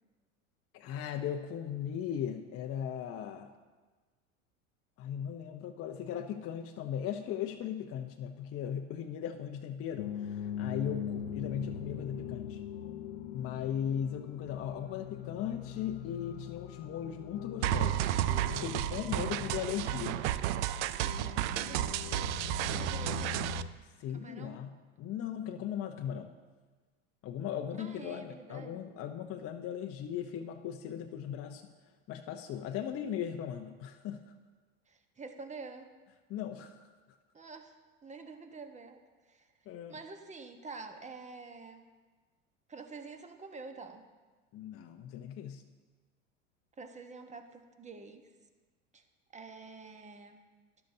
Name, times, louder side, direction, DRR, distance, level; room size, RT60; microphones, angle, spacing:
voice 1, 0.7-3.5 5.0-12.6 13.3-18.2 18.5-20.2 24.0-26.3 27.2-31.6 32.1-34.3 36.3-36.9 39.7-39.9 44.5-45.6, left 9 dB, 35° left, 4 dB, 0.7 m, -38 dB
sound 1, 10.0-23.7, left 8 dB, 75° left, 0.6 m, -42 dB
sound 2, 17.6-23.6, right 13 dB, 65° right, 0.5 m, -32 dB
voice 2, 21.6-22.2 22.6-23.7 24.1-24.6 27.8-28.9 34.9-35.9 37.3-37.8 38.0-39.0 39.3-39.5 39.9-41.8 42.7-44.0 46.8-48.2 48.9-49.0 49.3-50.4, right 4 dB, 20° right, 6 dB, 1.1 m, -47 dB
12.5 x 11.5 x 2.7 m, 1.3 s
hypercardioid pair, 85°, 39 cm